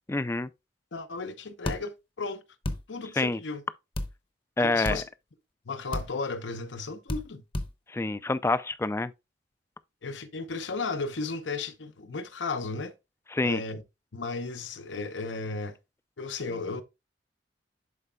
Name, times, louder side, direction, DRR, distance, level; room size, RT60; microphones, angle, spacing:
voice 1, 0.1-0.5 3.2-3.4 4.6-5.0 7.9-9.1 13.3-13.6, left 2 dB, 15° left, 0.3 m, -27 dB
voice 2, 0.9-2.4 2.9-3.6 4.6-5.1 5.7-7.4 10.0-12.9 13.4-13.8 14.1-15.8 16.2-16.8, left 3 dB, 80° left, 0.9 m, -34 dB
sound 1, 1.7-1.8 2.6-2.8 4.0-4.1 4.8-5.0 5.9-6.1 7.1-7.2 7.5-7.7, left 1 dB, 30° left, 0.8 m, -30 dB
11.0 x 4.4 x 2.3 m
head